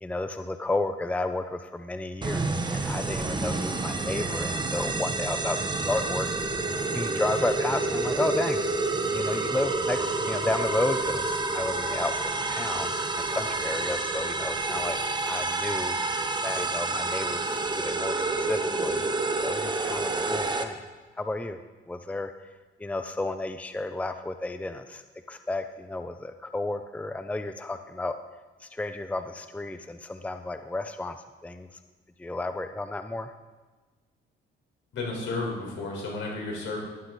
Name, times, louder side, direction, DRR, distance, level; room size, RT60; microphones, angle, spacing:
voice 1, 0.0-6.3 6.9-8.6 9.1-12.9 13.3-15.0 15.2-16.0 16.4-19.1 19.4-20.8 21.2-21.6 21.9-22.3 22.8-25.0 25.3-28.1 28.6-31.2 31.4-31.7 32.2-33.3, left 2 dB, 5° left, 9 dB, 0.5 m, -32 dB
sound 1, 2.2-20.6, right 3 dB, 20° right, 1.0 m, -29 dB
voice 2, 34.9-36.8, left 3 dB, 75° left, -1 dB, 4.2 m, -32 dB
12.0 x 11.5 x 4.0 m, 1.3 s
cardioid pair, 90°, 20 cm